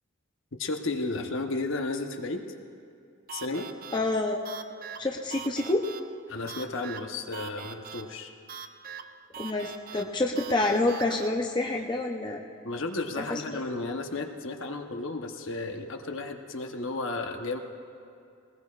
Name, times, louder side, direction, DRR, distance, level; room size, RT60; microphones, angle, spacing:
voice 1, 0.6-2.4 3.3-3.7 6.3-8.3 12.6-17.6, left 3 dB, 60° left, 4 dB, 0.9 m, -33 dB
sound 1, 3.3-11.3, right 7 dB, 40° right, 0.4 m, -43 dB
voice 2, 3.9-4.5 5.0-5.9 9.4-12.4 13.2-13.6, left 2 dB, 20° left, 1 dB, 0.6 m, -28 dB
21.0 x 19.5 x 2.4 m, 2.4 s
head